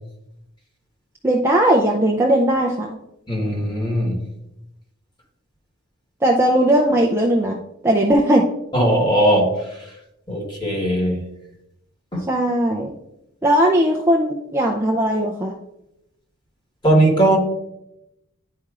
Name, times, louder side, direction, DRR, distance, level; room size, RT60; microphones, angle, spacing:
voice 1, 1.2-2.9 6.2-7.6 7.8-8.5 12.3-12.9 13.4-15.5, right 1 dB, 10° right, -1 dB, 0.4 m, -18 dB
voice 2, 3.3-4.2 8.7-9.9 10.3-11.2 12.1-12.2 16.8-17.4, right 1 dB, 20° left, -1 dB, 1.3 m, -19 dB
10.5 x 4.3 x 2.4 m, 0.87 s
head